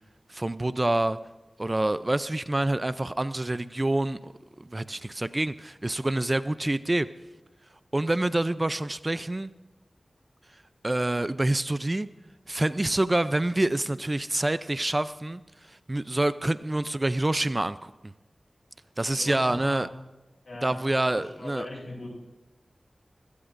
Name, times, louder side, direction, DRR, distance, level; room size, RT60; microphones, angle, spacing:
voice 1, 0.3-1.2 1.6-4.3 4.6-7.1 7.9-9.5 10.8-12.1 12.5-15.4 15.7-18.1 19.0-19.9 20.6-21.7, right 1 dB, 30° right, 14 dB, 0.5 m, -27 dB
voice 2, 19.2-19.9 20.4-20.8 21.1-22.1, left 2 dB, 65° left, -2 dB, 6.8 m, -39 dB
23.5 x 17.0 x 2.6 m, 1.1 s
wide cardioid pair, 50°, 0 cm